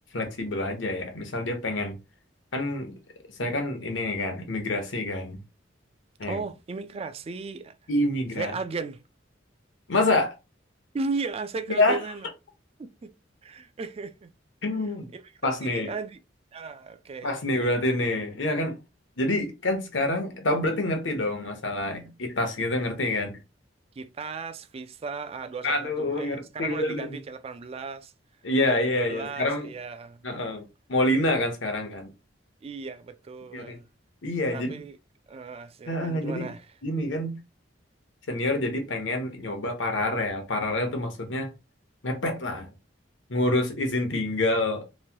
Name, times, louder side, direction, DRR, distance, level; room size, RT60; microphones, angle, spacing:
voice 1, 0.1-2.0 2.5-3.0 3.4-5.4 6.2-6.4 7.9-8.5 9.9-10.4 11.8-12.0 14.6-15.1 15.4-15.9 17.2-18.8 19.2-23.4 25.6-27.1 28.4-29.7 30.2-30.6 30.9-32.1 33.5-33.8 34.2-34.7 35.9-36.5 36.8-37.3 38.3-41.5 42.0-42.7 43.3-44.9, left 1 dB, 80° left, 0.9 m, -27 dB
voice 2, 6.2-7.8 8.4-9.0 10.9-12.3 13.0-13.1 13.4-14.3 15.1-16.2 16.5-17.3 24.0-28.1 28.7-30.4 32.6-33.9 34.5-35.0 35.3-36.7, right 4 dB, 30° right, 0.3 m, -36 dB
3.1 x 2.2 x 2.8 m
head